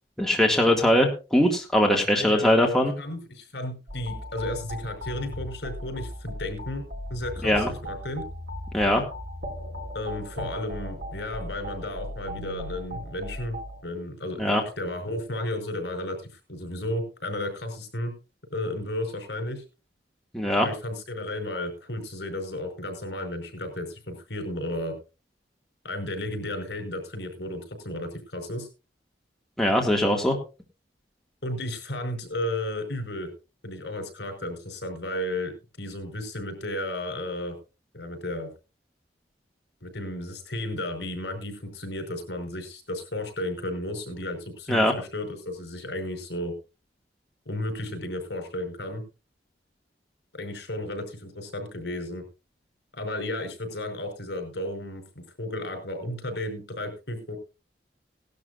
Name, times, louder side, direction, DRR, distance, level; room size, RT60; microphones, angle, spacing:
voice 1, 0.2-2.9 7.4-7.7 8.7-9.0 14.4-14.6 20.3-20.7 29.6-30.4 44.7-44.9, left 1 dB, 5° left, 0 dB, 2.1 m, -21 dB
voice 2, 2.1-2.5 3.0-6.8 7.1-8.2 9.9-18.1 18.5-19.6 20.6-24.9 25.8-28.7 31.4-33.3 33.6-37.6 37.9-38.5 39.8-46.5 47.4-49.0 50.3-52.2 52.9-57.4, left 1 dB, 75° left, 6 dB, 5.0 m, -33 dB
sound 1, 3.9-13.8, equal, 75° right, 5.9 m, -37 dB
18.5 x 12.0 x 2.5 m, 0.31 s
head